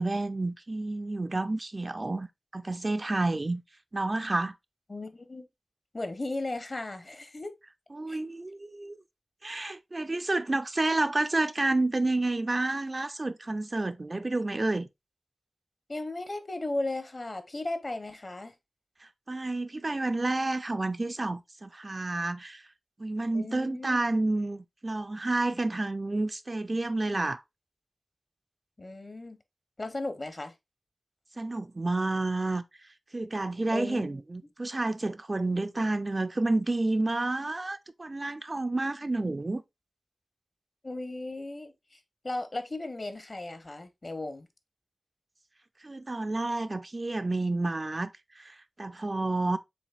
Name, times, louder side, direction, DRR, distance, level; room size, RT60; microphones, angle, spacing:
voice 1, 0.0-2.3 2.5-3.6 3.9-4.5 7.9-9.0 9.4-14.9 19.0-22.6 23.0-27.4 31.4-32.6 33.1-39.6 45.8-49.6, right 2 dB, 40° right, 0.4 m, -30 dB
voice 2, 4.9-5.4 5.9-7.5 8.1-8.2 15.9-18.5 23.3-24.0 28.8-29.4 29.8-30.5 33.7-34.2 40.8-42.0 42.2-44.5, left 2 dB, 45° left, 0.8 m, -36 dB
7.0 x 2.6 x 2.3 m
wide cardioid pair, 55°, 0 cm